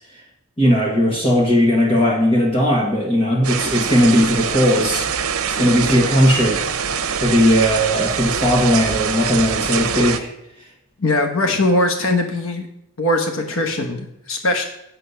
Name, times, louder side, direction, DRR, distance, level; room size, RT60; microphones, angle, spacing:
voice 1, 0.6-5.1 5.5-6.6 7.2-10.3, equal, 25° left, -2 dB, 1.5 m, -17 dB
sound 1, 3.4-10.2, right 7 dB, 85° right, 0.8 m, -24 dB
voice 2, 11.0-12.7 13.0-14.7, left 1 dB, 70° left, 4 dB, 1.1 m, -20 dB
8.2 x 6.5 x 5.6 m, 0.85 s
head